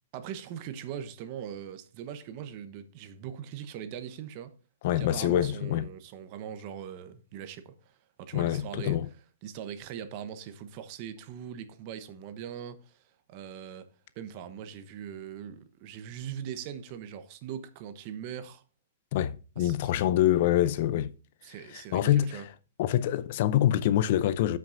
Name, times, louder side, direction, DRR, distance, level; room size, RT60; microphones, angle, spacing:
voice 1, 0.1-4.6 5.0-9.0 9.4-13.0 13.3-13.9 14.1-18.6 19.6-19.8 21.4-22.5, right 9 dB, 45° right, 1.0 m, -41 dB
voice 2, 4.8-5.8 8.3-9.1 19.1-21.1 21.7-22.4 22.8-24.6, left 12 dB, 55° left, 0.5 m, -25 dB
13.5 x 5.9 x 2.6 m
hypercardioid pair, 130°, 0 cm